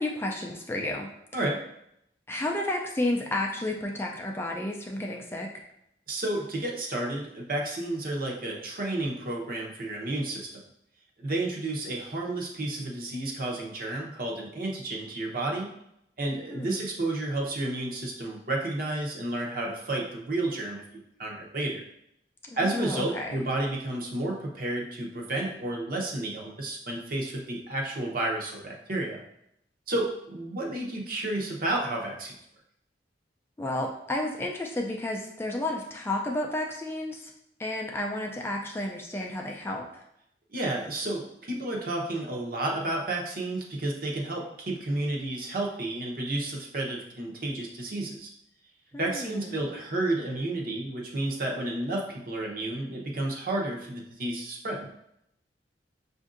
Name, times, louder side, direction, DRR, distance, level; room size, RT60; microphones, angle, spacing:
voice 1, 0.0-1.4 2.3-5.5 16.5-16.8 22.5-23.3 33.6-37.3 37.6-40.0 48.9-49.7, left 1 dB, 15° left, 0 dB, 0.3 m, -32 dB
voice 2, 6.1-10.5 11.2-15.7 16.2-20.8 21.2-21.8 22.6-29.2 29.9-32.3 40.5-48.3 49.0-54.9, right 2 dB, 50° right, -1 dB, 0.8 m, -31 dB
6.2 x 2.6 x 2.5 m, 0.77 s
head